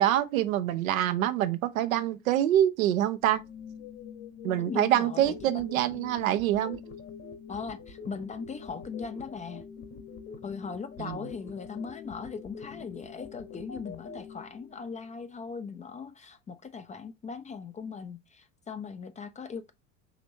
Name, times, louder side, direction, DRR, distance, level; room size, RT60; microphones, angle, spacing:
voice 1, 0.0-3.4 4.4-6.8 11.0-11.2, right 12 dB, 75° right, 0.6 m, -26 dB
sound 1, 3.2-15.3, left 7 dB, 60° left, 1.0 m, -46 dB
voice 2, 4.7-5.3 7.5-9.6 10.4-19.7, left 5 dB, 20° left, 0.4 m, -39 dB
sound 2, 5.2-14.2, left 5 dB, 35° left, 1.0 m, -46 dB
4.9 x 3.3 x 2.6 m
hypercardioid pair, 70°, 41 cm